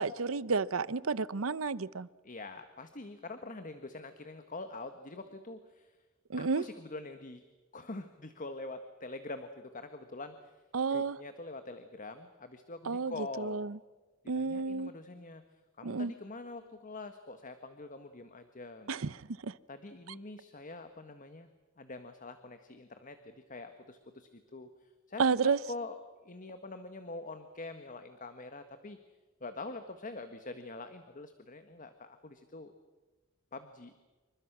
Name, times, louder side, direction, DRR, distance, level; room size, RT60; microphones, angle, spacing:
voice 1, 0.0-2.1 6.3-6.6 10.7-11.2 12.9-13.8 14.3-14.9 15.8-16.1 18.9-19.2 19.4-19.5 25.2-25.6, right 4 dB, 75° right, 0.7 m, -31 dB
voice 2, 2.2-6.0 6.4-7.4 7.7-10.6 10.9-13.7 14.2-15.4 15.8-18.9 19.7-21.5 21.8-25.3 25.6-26.0 26.2-29.0 29.4-32.7 33.5-33.9, left 2 dB, 40° left, 1.5 m, -45 dB
28.0 x 24.5 x 6.1 m
head